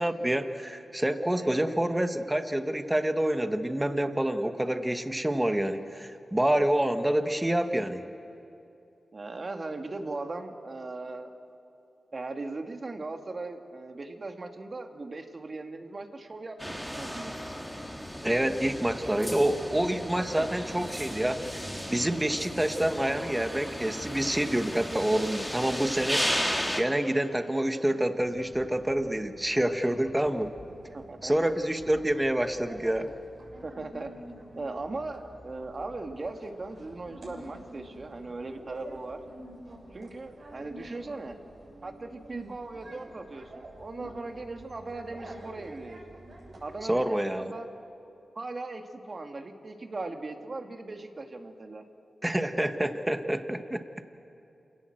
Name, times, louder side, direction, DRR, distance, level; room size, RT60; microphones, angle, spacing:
voice 1, 0.0-8.0 18.2-26.3 26.7-30.5 31.2-33.1 46.9-47.5 52.2-53.8, right 1 dB, 15° right, 7 dB, 1.5 m, -27 dB
voice 2, 9.1-11.3 12.1-17.3 20.1-20.5 30.9-31.3 33.6-34.1 34.6-39.2 39.9-41.3 41.8-46.0 46.6-47.7 48.4-51.8, right 3 dB, 50° right, 5 dB, 2.0 m, -38 dB
sound 1, 16.6-26.8, equal, ahead, 3.0 m, -35 dB
sound 2, 28.2-46.9, right 1 dB, 65° right, 6.9 m, -48 dB
27.5 x 17.5 x 7.8 m, 2.7 s
supercardioid pair, 40°, 0 cm